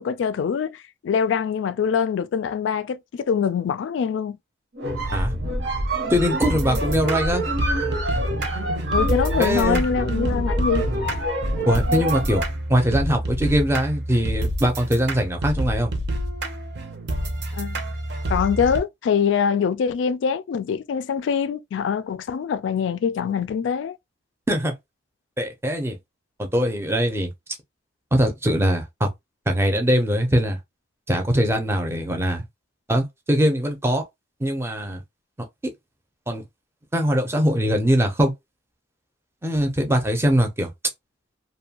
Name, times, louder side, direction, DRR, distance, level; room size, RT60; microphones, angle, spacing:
voice 1, 0.0-4.4 8.9-10.8 17.5-17.8 18.3-24.0, left 6 dB, 80° left, 0.3 m, -24 dB
sound 1, 4.7-12.6, right 1 dB, 85° right, 0.9 m, -26 dB
voice 2, 6.1-7.4 9.4-9.8 11.7-12.4 12.7-15.9 24.5-24.7 25.4-26.0 26.4-27.3 28.1-29.1 29.5-30.6 31.1-32.4 32.9-34.0 34.4-35.0 36.3-36.4 36.9-38.3 39.4-40.7, equal, 15° right, 0.5 m, -22 dB
sound 2, 6.3-18.8, right 1 dB, 60° right, 0.6 m, -28 dB
2.6 x 2.2 x 2.7 m
head